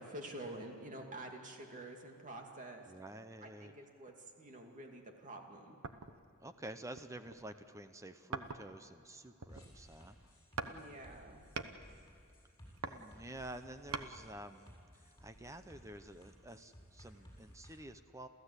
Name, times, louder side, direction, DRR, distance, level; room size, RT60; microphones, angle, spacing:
voice 1, 0.0-2.8 3.4-5.8 10.6-11.4, right 1 dB, 35° right, 2 dB, 2.5 m, -48 dB
voice 2, 2.8-3.7 6.4-10.3 12.8-14.7 15.0-18.3, right 1 dB, 15° right, 10 dB, 0.7 m, -50 dB
sound 1, 5.8-6.3 6.9-7.5 8.3-8.9 9.2-9.9 10.6-10.8 11.1-11.8 12.5-14.1 14.6-14.7, right 4 dB, 75° right, 1.1 m, -44 dB
sound 2, 9.5-17.8, equal, 15° left, 7.1 m, -58 dB
29.0 x 15.0 x 8.2 m, 2.6 s
head